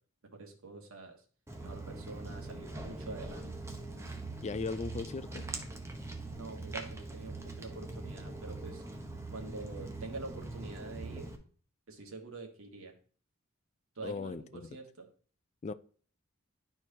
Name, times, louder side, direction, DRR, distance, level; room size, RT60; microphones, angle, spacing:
voice 1, 0.3-1.2 1.6-3.5 6.3-8.8 9.3-11.3 11.9-12.9 14.0-15.1, right 3 dB, 85° right, 1.6 m, -46 dB
Walk footsteps, 1.5-11.4, right 2 dB, 15° right, 0.9 m, -42 dB
voice 2, 4.4-5.4 14.0-14.7 15.6-15.7, left 4 dB, 35° left, 0.4 m, -37 dB
12.0 x 4.5 x 2.9 m
head